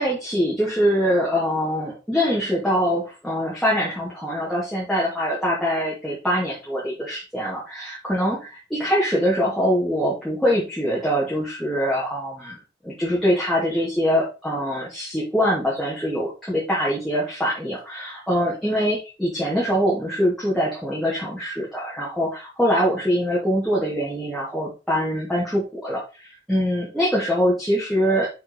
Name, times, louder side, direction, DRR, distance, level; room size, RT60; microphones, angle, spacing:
voice 1, 0.0-12.6 12.8-28.3, equal, ahead, -7 dB, 2.5 m, -23 dB
6.3 x 5.9 x 4.0 m, 0.29 s
head